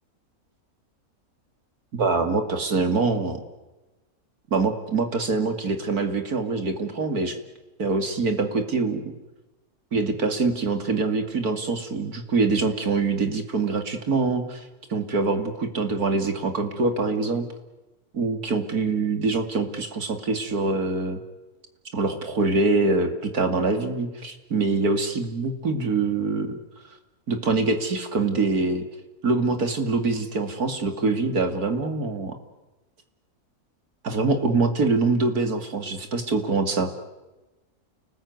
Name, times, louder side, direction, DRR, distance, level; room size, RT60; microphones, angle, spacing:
voice 1, 1.9-3.4 4.5-7.4 7.8-9.0 9.9-17.4 18.1-21.2 21.9-26.6 27.3-28.8 29.2-32.3 34.0-36.9, right 3 dB, 80° right, 7 dB, 3.0 m, -24 dB
29.5 x 19.5 x 9.5 m, 1.1 s
omnidirectional pair, 1.6 m